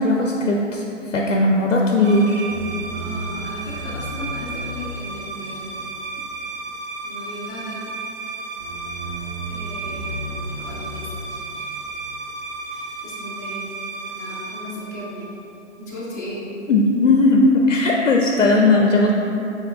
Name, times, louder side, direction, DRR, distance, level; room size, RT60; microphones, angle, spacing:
voice 1, 0.0-2.4 16.7-19.1, left 2 dB, 85° left, 0 dB, 0.5 m, -17 dB
sound 1, 2.0-15.7, right 2 dB, 50° right, 0.8 m, -32 dB
voice 2, 2.9-5.7 7.0-7.8 9.5-10.2 10.6-11.2 11.5-11.7 12.7-13.6 14.1-15.3 15.8-16.5, equal, 15° left, -8 dB, 0.4 m, -36 dB
5.6 x 3.0 x 2.3 m, 2.8 s
figure-of-eight pair, 130°, 36 cm